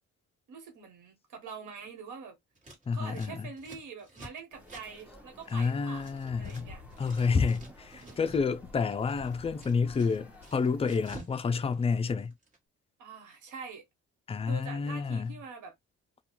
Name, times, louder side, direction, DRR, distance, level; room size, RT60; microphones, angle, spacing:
voice 1, 0.5-2.4 2.9-6.8 7.9-8.2 13.0-13.9 14.3-15.7, right 5 dB, 80° right, 1.1 m, -45 dB
Scissors, 2.5-6.6 6.9-8.5 8.8-11.4 11.6-12.6, right 1 dB, 25° right, 1.3 m, -51 dB
voice 2, 2.9-3.5 5.5-6.7 7.0-12.3 14.3-15.3, left 5 dB, 20° left, 0.3 m, -29 dB
sound 1, 4.5-11.1, left 1 dB, 5° right, 0.7 m, -55 dB
sound 2, 6.0-11.1, left 5 dB, 50° left, 0.7 m, -52 dB
2.4 x 2.3 x 2.9 m
cardioid pair, 90°, 30 cm